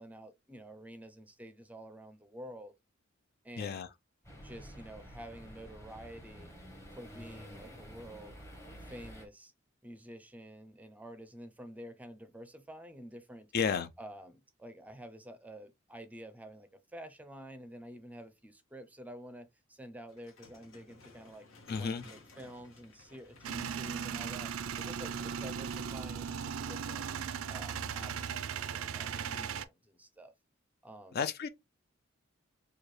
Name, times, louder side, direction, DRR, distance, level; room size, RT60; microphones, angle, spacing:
voice 1, 0.0-2.7 3.4-3.8 4.4-6.5 6.9-8.4 8.8-9.5 9.8-13.5 14.0-21.5 21.8-24.5 24.8-27.0 27.5-30.3 30.8-31.2, equal, 5° right, 0.5 m, -49 dB
voice 2, 3.6-3.9 13.5-13.9 21.7-22.0 31.1-31.5, left 6 dB, 50° left, 0.4 m, -32 dB
sound 1, 4.2-9.2, equal, 15° left, 1.0 m, -50 dB
sound 2, 20.1-25.2, left 3 dB, 70° left, 1.2 m, -57 dB
Male speech man speaking / Vehicle / Engine starting, 23.4-29.7, right 7 dB, 85° right, 0.4 m, -37 dB
4.4 x 2.3 x 3.2 m
head